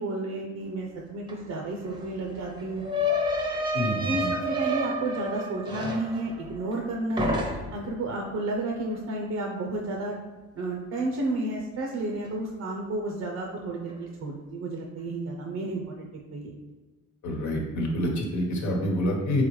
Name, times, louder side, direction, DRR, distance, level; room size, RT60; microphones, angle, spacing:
voice 1, 0.0-2.8 4.0-10.2 10.5-16.6, right 2 dB, 60° right, 0 dB, 0.7 m, -32 dB
sound 1, 1.3-1.4 1.6-6.9 7.2-7.9, equal, 15° right, 0.7 m, -30 dB
voice 2, 3.7-4.3 17.2-19.4, left 1 dB, 70° left, 0 dB, 1.1 m, -27 dB
4.0 x 3.9 x 3.1 m, 1.3 s
cardioid pair, 90°, 30 cm